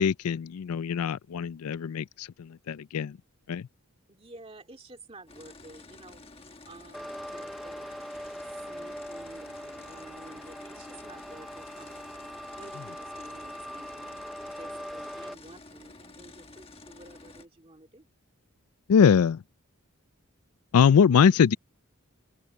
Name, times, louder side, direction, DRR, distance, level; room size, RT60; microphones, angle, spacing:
voice 1, 0.0-3.2 3.5-3.6 18.9-19.4 20.7-21.5, left 7 dB, 85° left, 0.4 m, -22 dB
voice 2, 4.1-8.0 8.5-12.1 12.5-14.2 14.5-18.1, right 2 dB, 25° right, 2.4 m, -51 dB
sound 1, 5.3-17.4, left 2 dB, 25° left, 1.3 m, -50 dB
sound 2, 6.9-15.3, equal, ahead, 0.6 m, -41 dB
open air
head